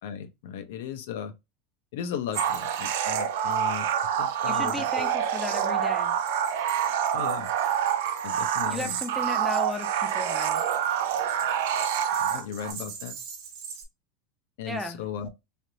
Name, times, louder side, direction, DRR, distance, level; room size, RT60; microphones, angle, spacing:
voice 1, 0.0-1.3 1.9-3.9 4.2-5.1 7.1-7.5 8.2-9.0 12.2-13.2 14.6-15.3, left 8 dB, 80° left, 0.6 m, -36 dB
sound 1, 2.3-5.1 5.4-13.8, right 6 dB, 45° right, 1.1 m, -44 dB
sound 2, 2.4-12.7, right 9 dB, 80° right, 0.5 m, -27 dB
voice 2, 4.5-6.2 8.7-10.6 14.7-15.0, left 1 dB, 5° left, 0.6 m, -35 dB
3.2 x 2.5 x 2.7 m
supercardioid pair, 160°, 0 cm